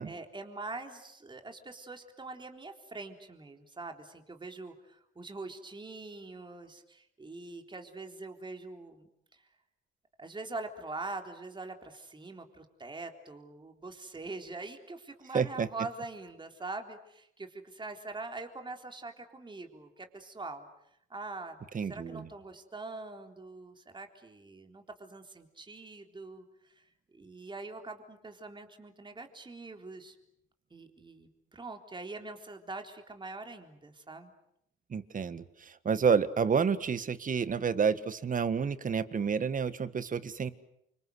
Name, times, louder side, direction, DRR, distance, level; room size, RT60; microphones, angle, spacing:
voice 1, 0.0-9.1 9.3-9.4 10.2-20.7 21.1-21.6 21.9-30.2 30.7-34.3, right 3 dB, 25° right, 5 dB, 3.7 m, -43 dB
voice 2, 15.3-15.7 21.7-22.3 34.9-40.5, right 6 dB, 40° right, 13 dB, 1.7 m, -29 dB
29.0 x 25.5 x 8.0 m, 0.75 s
cardioid pair, 90°, 20 cm